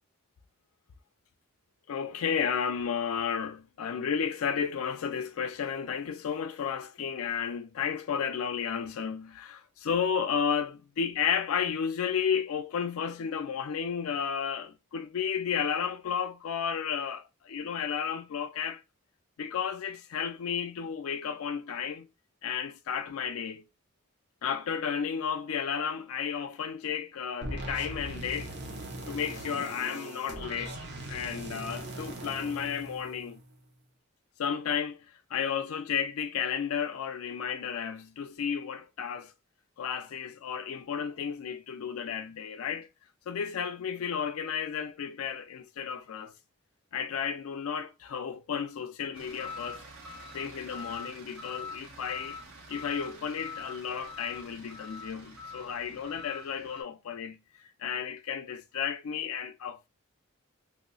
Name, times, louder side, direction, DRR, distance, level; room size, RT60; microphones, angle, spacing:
voice 1, 1.9-18.8 19.4-22.1 22.4-23.6 24.4-28.6 29.1-30.8 31.1-33.4 34.4-39.3 39.8-42.9 43.3-46.3 46.9-49.9 50.3-52.4 52.7-57.4 57.8-59.9, left 7 dB, 80° left, 0.4 m, -33 dB
sound 1, 27.4-33.6, right 1 dB, 55° right, 0.7 m, -40 dB
sound 2, 49.1-56.8, left 3 dB, 80° right, 1.2 m, -44 dB
3.0 x 2.0 x 3.7 m
head